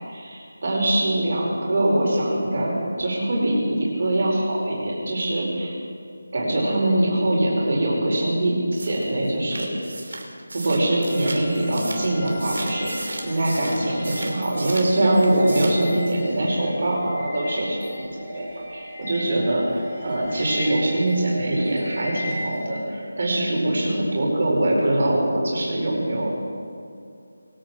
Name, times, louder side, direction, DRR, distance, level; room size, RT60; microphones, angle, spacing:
voice 1, 0.0-5.7 6.3-9.8 10.5-26.3, right 1 dB, 40° right, -4 dB, 4.8 m, -23 dB
sound 1, 8.7-14.9 15.2-15.9, right 2 dB, 65° right, 2.9 m, -36 dB
sound 2, 10.6-22.7, left 1 dB, 10° left, 2.8 m, -38 dB
22.0 x 9.0 x 6.1 m, 2.5 s
figure-of-eight pair, 175°, 0 cm